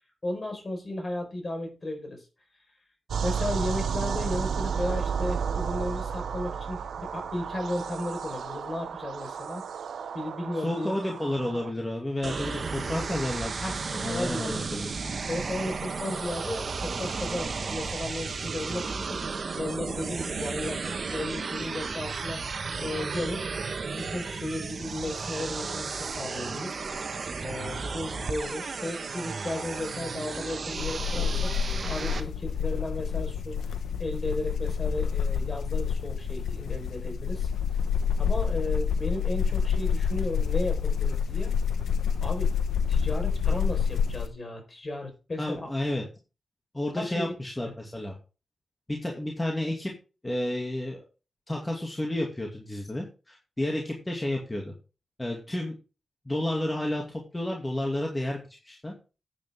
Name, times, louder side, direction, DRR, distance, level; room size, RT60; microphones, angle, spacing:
voice 1, 0.2-2.2 3.2-9.6 10.1-11.0 13.6-13.8 14.1-14.8 15.2-19.2 19.6-22.4 22.8-23.6 23.9-31.5 31.8-33.6 34.0-37.5 38.2-41.5 42.2-42.5 42.9-45.7 46.9-47.3 47.6-47.7, left 1 dB, 40° left, 4 dB, 4.7 m, -34 dB
sound 1, 3.1-11.7, right 6 dB, 85° right, 0.7 m, -32 dB
voice 2, 10.5-14.9 45.4-46.1 46.7-48.1 48.9-49.9 50.2-51.0 51.5-54.7 55.2-55.7 56.3-58.9, left 1 dB, 15° left, -1 dB, 2.4 m, -31 dB
sound 2, 12.2-32.2, right 4 dB, 60° right, 1.3 m, -34 dB
sound 3, 30.8-44.3, left 6 dB, 85° left, 1.0 m, -28 dB
10.5 x 9.1 x 3.7 m, 0.32 s
cardioid pair, 65°, 0 cm